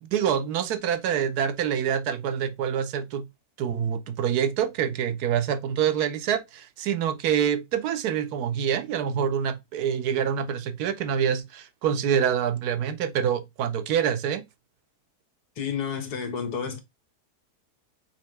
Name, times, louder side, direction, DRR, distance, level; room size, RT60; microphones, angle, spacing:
voice 1, 0.1-3.2 3.6-14.4, right 8 dB, 80° right, 1.2 m, -26 dB
voice 2, 15.6-16.8, left 6 dB, 75° left, 1.6 m, -30 dB
4.3 x 3.8 x 3.1 m
omnidirectional pair, 1.7 m